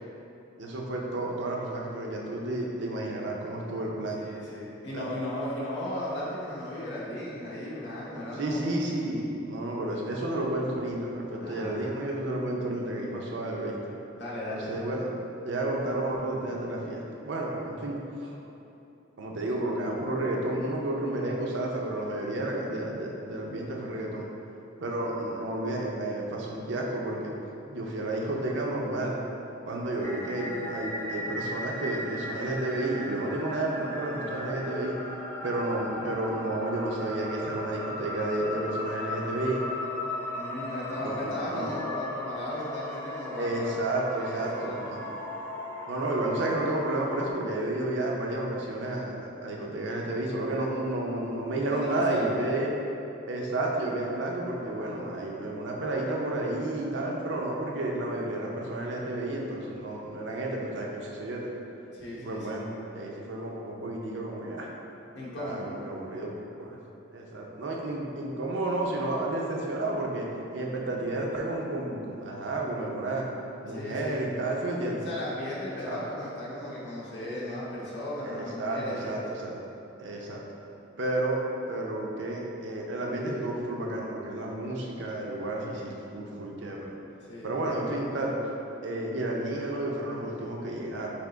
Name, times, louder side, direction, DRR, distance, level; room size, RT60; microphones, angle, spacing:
voice 1, 0.6-4.2 4.9-5.1 8.4-13.9 14.5-15.1 15.4-18.4 19.2-24.3 24.8-27.3 27.7-29.2 29.7-34.9 35.4-39.6 41.0-41.7 43.3-45.1 45.9-49.2 49.4-52.7 53.3-61.5 62.1-62.6 62.9-64.7 65.4-66.3 66.6-66.8 67.1-73.3 73.6-75.1 75.9-76.0 78.2-79.6 80.0-80.4 81.0-81.4 81.7-86.9 87.4-88.3 88.8-91.1, right 1 dB, 65° right, -1 dB, 0.5 m, -31 dB
voice 2, 4.2-8.6 11.4-11.9 14.2-14.7 40.4-43.7 44.2-44.8 51.7-52.3 61.9-62.6 65.1-65.7 73.6-74.2 75.0-79.2 87.3-87.5, left 1 dB, 60° left, -7 dB, 0.7 m, -36 dB
sound 1, 30.0-47.3, left 1 dB, 10° left, 0.4 m, -37 dB
3.4 x 2.9 x 3.8 m, 2.8 s
head